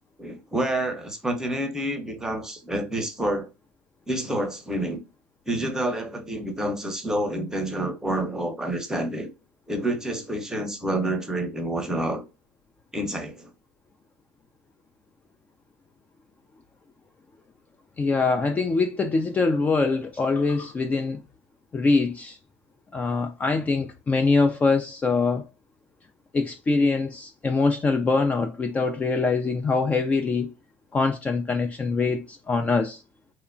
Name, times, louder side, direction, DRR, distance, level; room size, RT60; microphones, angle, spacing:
voice 1, 0.2-3.5 4.1-5.0 5.5-9.3 9.7-12.2 12.9-13.5 26.7-26.9, right 1 dB, 10° right, 0.7 m, -28 dB
voice 2, 18.0-21.2 21.7-22.4 22.9-25.4 26.3-30.5 30.9-33.0, left 4 dB, 20° left, 0.3 m, -23 dB
2.9 x 2.1 x 2.4 m
hypercardioid pair, 90°, 7 cm